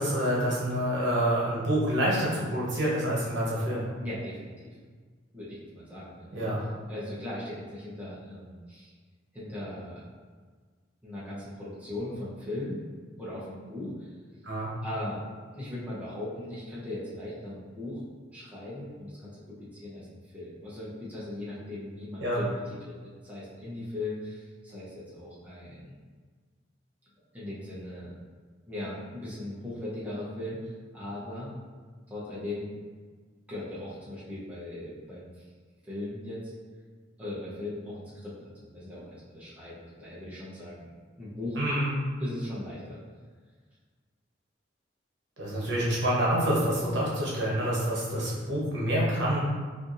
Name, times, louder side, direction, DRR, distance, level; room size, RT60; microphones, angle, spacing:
voice 1, 0.0-3.8 6.3-6.6 14.4-14.7 22.2-22.4 41.6-41.9 45.4-49.4, equal, 70° right, -6 dB, 1.0 m, -27 dB
voice 2, 4.0-4.7 5.3-8.9 9.3-10.0 11.0-12.8 13.2-14.1 14.8-15.2 15.5-18.0 18.3-20.1 20.3-22.5 22.8-22.9 23.2-25.9 27.3-28.1 28.7-31.5 32.1-32.7 33.5-35.3 35.9-36.5 37.2-40.9 41.2-41.6 42.2-43.0, left 1 dB, 10° right, -9 dB, 0.7 m, -38 dB
4.3 x 2.6 x 2.5 m, 1.5 s
head